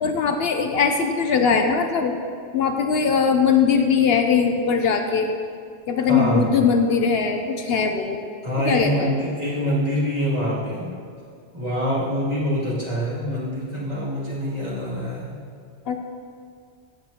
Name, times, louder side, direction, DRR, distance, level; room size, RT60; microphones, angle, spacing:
voice 1, 0.0-2.2 2.5-5.4 5.9-8.3 8.6-9.1 15.9-16.0, left 6 dB, 70° left, 5 dB, 0.9 m, -20 dB
voice 2, 6.0-6.5 8.4-10.9 11.5-15.3, equal, 40° right, -9 dB, 2.8 m, -25 dB
14.5 x 7.9 x 2.9 m, 2.3 s
omnidirectional pair, 1.1 m